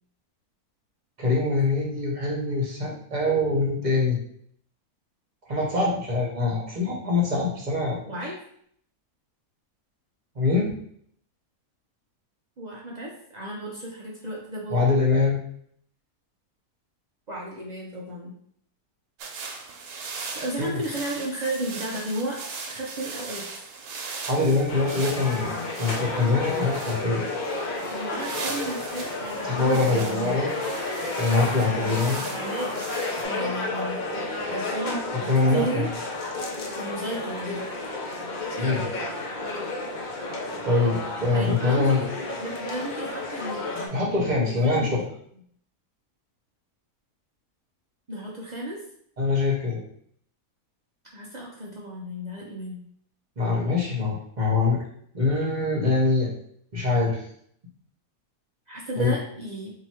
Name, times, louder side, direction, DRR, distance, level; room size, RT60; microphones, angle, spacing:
voice 1, 1.2-4.2 5.5-8.0 8.2-8.3 10.4-10.7 14.7-15.4 20.6-20.8 24.3-25.5 25.8-27.2 29.4-30.5 31.2-32.2 35.3-35.9 38.6-38.8 40.6-42.0 43.9-45.0 49.2-49.8 53.4-54.8 55.1-56.3 56.7-57.2 59.0-59.1, left 3 dB, 35° right, -3 dB, 0.9 m, -23 dB
voice 2, 8.1-8.4 12.6-14.9 17.3-18.3 20.3-22.4 22.7-23.6 27.9-30.4 31.3-32.7 33.2-35.9 36.8-37.8 41.3-44.9 48.1-48.8 51.1-52.8 58.7-59.7, right 1 dB, 60° right, -4 dB, 0.4 m, -34 dB
sound 1, 19.2-33.2, right 4 dB, 85° right, 1.1 m, -39 dB
sound 2, 24.7-43.9, left 2 dB, 70° left, 0.4 m, -31 dB
2.9 x 2.8 x 4.3 m, 0.65 s
omnidirectional pair, 1.6 m